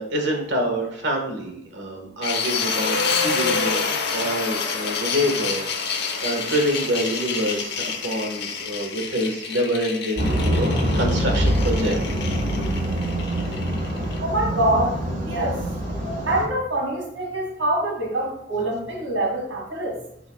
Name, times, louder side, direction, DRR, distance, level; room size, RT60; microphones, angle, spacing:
voice 1, 0.0-3.8 4.1-12.0, equal, 65° right, 2 dB, 1.5 m, -26 dB
sound 1, 2.2-14.2, left 5 dB, 55° left, 1.0 m, -28 dB
sound 2, 10.2-16.5, equal, 40° right, 1.6 m, -24 dB
voice 2, 14.2-15.0 15.2-15.6 16.3-20.0, right 1 dB, 85° right, 0 dB, 2.2 m, -24 dB
11.0 x 4.0 x 2.3 m, 0.75 s
head